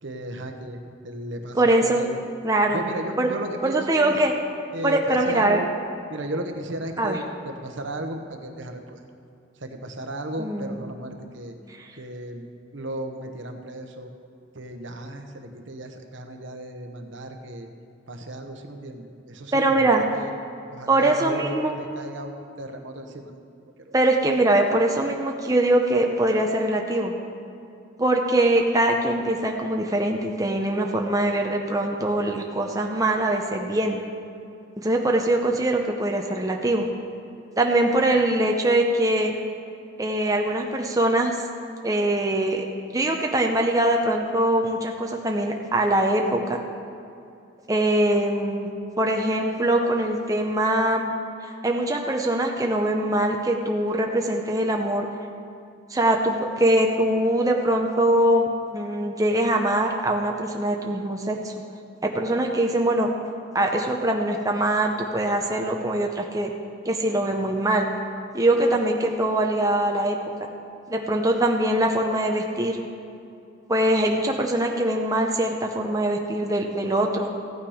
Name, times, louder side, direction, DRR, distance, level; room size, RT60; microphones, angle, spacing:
voice 1, 0.0-2.2 2.7-4.2 4.7-5.7 6.1-9.0 9.6-11.5 12.0-12.5 12.7-14.1 14.5-17.7 18.1-20.3 20.7-23.3 23.8-24.0, right 1 dB, 65° right, 5 dB, 1.0 m, -35 dB
voice 2, 1.6-2.0 2.4-2.8 3.2-3.3 3.6-4.3 4.8-5.6 7.0-7.2 10.4-10.8 19.5-20.0 20.9-21.7 23.9-27.1 28.0-34.0 34.8-36.9 37.6-39.4 40.0-41.3 41.8-42.6 42.9-46.6 47.7-48.7 49.0-51.1 51.4-55.1 55.9-61.5 62.0-63.1 63.5-66.5 66.8-67.9 68.3-70.2 70.9-72.8 73.7-77.3, right 1 dB, 15° right, 1 dB, 0.7 m, -22 dB
15.0 x 8.8 x 4.9 m, 2.6 s
head